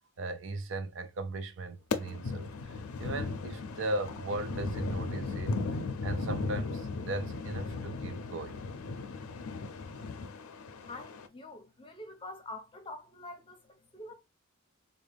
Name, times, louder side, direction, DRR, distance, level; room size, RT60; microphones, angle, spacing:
voice 1, 0.2-5.5 6.0-8.6, right 2 dB, 60° right, 0.4 m, -37 dB
sound 1, 1.9-11.3, left 3 dB, 80° left, 0.5 m, -37 dB
voice 2, 10.8-14.1, left 2 dB, 25° left, 0.6 m, -46 dB
3.7 x 2.1 x 3.4 m
head